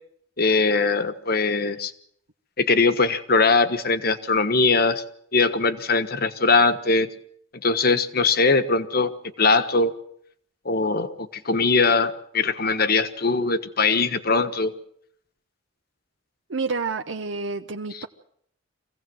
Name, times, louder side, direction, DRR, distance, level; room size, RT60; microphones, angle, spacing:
voice 1, 0.4-1.9 2.6-5.0 5.3-7.1 7.6-9.1 9.4-9.9 10.6-14.7 17.9-18.0, left 3 dB, 50° left, 10 dB, 1.3 m, -21 dB
voice 2, 16.5-18.1, right 4 dB, 75° right, 5 dB, 0.9 m, -29 dB
24.5 x 16.5 x 7.8 m, 0.68 s
head